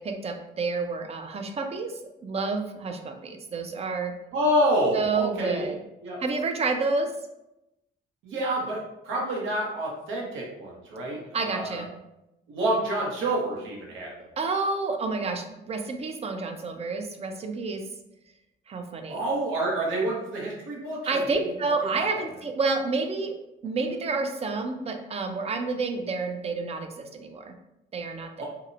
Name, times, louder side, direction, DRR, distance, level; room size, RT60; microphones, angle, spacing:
voice 1, 0.0-4.1 4.9-5.8 6.2-7.1 11.3-11.9 14.4-17.8 18.7-19.2 21.0-23.3 23.6-27.5 27.9-28.3, right 3 dB, 30° right, 5 dB, 0.3 m, -29 dB
voice 2, 4.3-5.7 6.0-6.2 8.2-11.8 12.5-14.1 19.1-21.2 21.9-22.2 28.4-28.5, right 1 dB, 90° right, -3 dB, 0.8 m, -28 dB
2.8 x 2.0 x 2.5 m, 0.90 s
cardioid pair, 90°, 20 cm